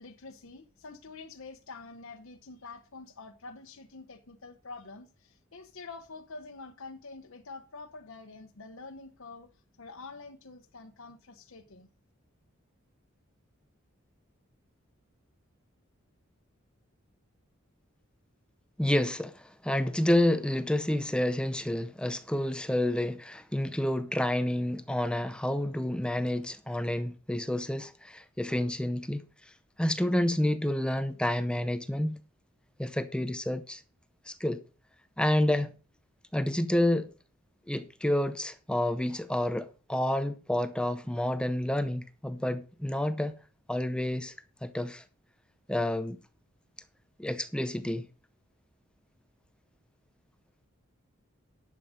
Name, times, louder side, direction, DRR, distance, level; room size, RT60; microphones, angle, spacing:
voice 1, 0.0-11.9, left 3 dB, 80° left, 1.0 m, -47 dB
voice 2, 18.8-29.5 29.8-32.2 32.8-33.8 34.3-34.6 35.2-35.8 36.3-37.1 37.7-43.3 43.7-44.3 44.6-45.0 45.7-46.2 47.2-48.1, left 1 dB, 5° left, 0.6 m, -29 dB
11.0 x 7.6 x 5.1 m
head